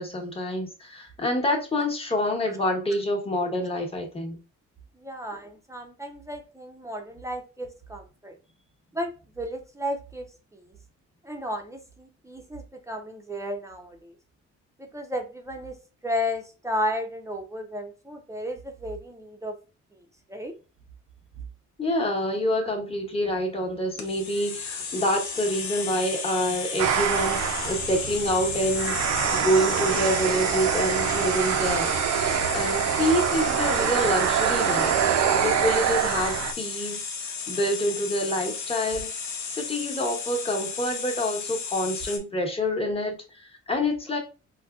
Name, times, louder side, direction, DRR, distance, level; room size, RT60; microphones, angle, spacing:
voice 1, 0.0-4.4 21.8-31.9 32.5-35.0 35.4-39.1 39.5-44.2, equal, 20° left, 1.0 m, -27 dB
voice 2, 5.0-8.3 8.9-9.1 9.4-10.3 10.5-10.7 11.2-14.1 14.8-15.7 16.0-19.5 20.3-20.5 21.4-21.5 32.6-32.9 35.3-35.6, equal, 10° right, 0.5 m, -33 dB
sound 1, 24.0-42.2, left 6 dB, 70° left, 0.8 m, -33 dB
sound 2, 26.8-36.5, right 9 dB, 60° right, 0.4 m, -25 dB
4.0 x 2.2 x 2.4 m
cardioid pair, 90°, 30 cm